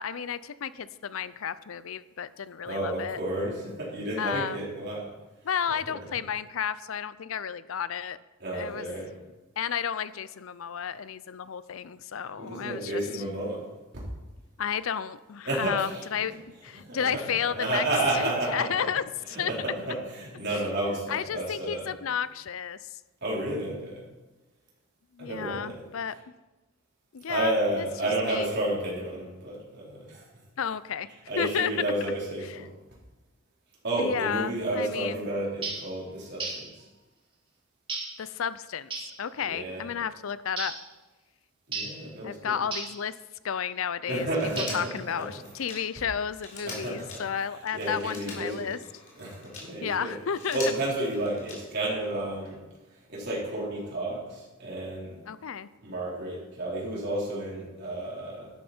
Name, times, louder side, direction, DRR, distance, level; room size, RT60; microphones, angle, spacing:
voice 1, 0.0-3.2 4.2-4.6 5.4-8.2 8.5-8.9 9.6-13.2 14.6-17.8 18.1-19.5 21.1-22.9 25.1-26.1 27.1-27.9 28.2-28.5 30.6-31.1 31.4-31.7 32.5-32.7 34.0-35.2 38.2-38.9 39.2-40.7 42.2-43.1 43.4-44.3 44.7-48.8 49.8-50.6 55.3-55.7, left 7 dB, 70° left, 16 dB, 0.5 m, -32 dB
voice 2, 2.6-5.1 8.4-9.1 12.4-13.6 15.4-16.0 16.9-18.8 19.3-21.9 23.2-24.1 25.2-25.8 27.3-30.2 31.3-32.7 33.8-36.8 39.4-39.8 41.7-42.5 44.0-44.8 45.2-45.3 46.6-47.2 47.7-48.7 49.2-50.1 50.5-52.6 53.1-55.2 55.8-58.5, right 1 dB, 50° right, -5 dB, 4.5 m, -31 dB
sound 1, 35.6-35.9 36.4-36.7 37.9-38.2 38.9-39.2 40.6-40.9 41.7-42.0 42.7-43.0 44.6-45.0, right 3 dB, 25° right, 2.2 m, -34 dB
Telephone, 44.3-49.7 50.2-51.9 53.2-53.3, left 3 dB, 40° left, 3.5 m, -44 dB
12.0 x 11.0 x 4.4 m, 1.1 s
head